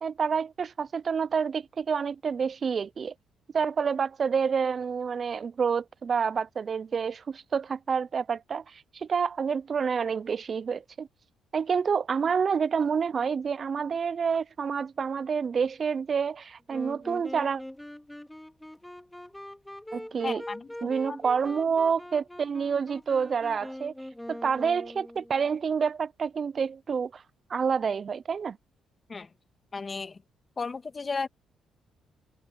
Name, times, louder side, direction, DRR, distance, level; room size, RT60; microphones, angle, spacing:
voice 1, 0.0-3.1 3.5-11.1 11.5-17.6 19.9-20.4 20.8-23.9 24.3-27.2 27.5-28.6, right 6 dB, 45° right, 0.4 m, -28 dB
Wind instrument woodwind instrument, 16.7-25.5, left 1 dB, 5° left, 3.8 m, -43 dB
voice 2, 20.2-21.2 29.1-29.3 29.7-30.2 30.6-31.3, left 4 dB, 30° left, 1.8 m, -34 dB
cardioid pair, 90°, 0 cm